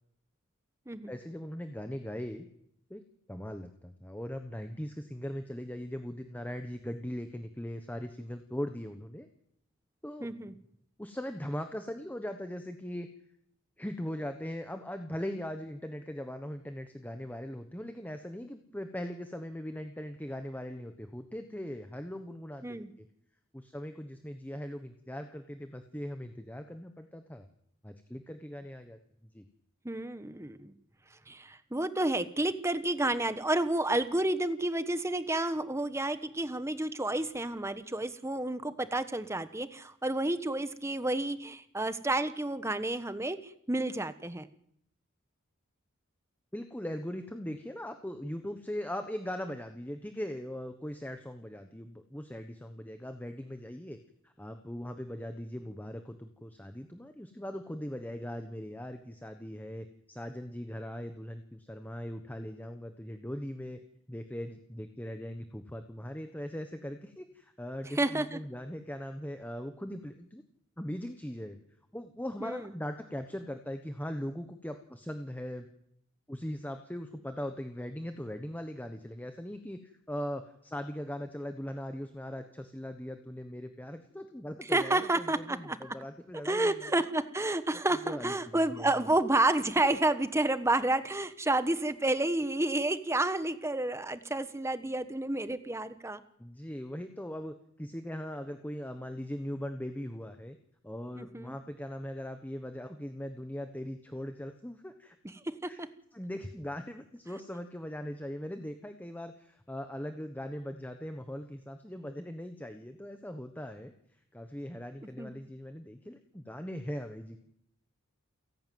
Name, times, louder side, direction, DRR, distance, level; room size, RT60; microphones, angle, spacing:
voice 1, 1.1-2.5 2.9-3.0 3.3-9.3 10.0-10.3 11.0-13.1 13.8-23.1 23.5-27.5 27.8-29.0 29.3-29.4 46.5-54.0 54.2-63.8 64.1-70.4 70.8-71.6 71.9-75.7 76.3-79.8 80.1-86.9 88.0-89.1 96.4-100.6 100.8-105.2 105.6-105.8 106.1-113.9 114.3-117.4, equal, 10° left, 7 dB, 1.2 m, -40 dB
voice 2, 10.2-10.5 22.6-22.9 29.8-30.7 31.3-44.5 68.0-68.4 72.4-72.7 84.7-85.9 86.4-96.2 101.2-101.5 105.4-105.9 115.2-115.3, right 2 dB, 15° right, 12 dB, 1.1 m, -30 dB
29.0 x 11.5 x 9.4 m, 0.73 s
head